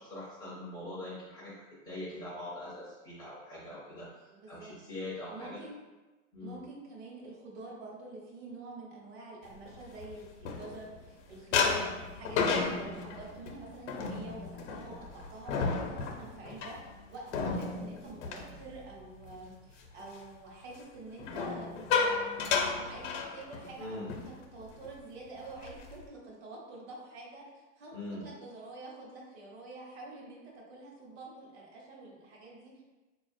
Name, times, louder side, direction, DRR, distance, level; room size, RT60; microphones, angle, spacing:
voice 1, 0.0-4.1 4.5-5.6 6.3-6.6 23.8-24.1 27.9-28.3, left 1 dB, 10° left, -9 dB, 0.4 m, -42 dB
voice 2, 4.3-4.7 5.3-5.8 6.4-16.8 17.1-32.8, right 2 dB, 60° right, -2 dB, 1.0 m, -47 dB
sound 1, 9.7-11.1 11.5-19.4 19.7-20.0 21.2-23.8 24.1-24.3 24.6-24.9 25.4-26.1, left 5 dB, 70° left, 0.6 m, -33 dB
4.2 x 2.3 x 2.5 m, 1.2 s
supercardioid pair, 165°, 37 cm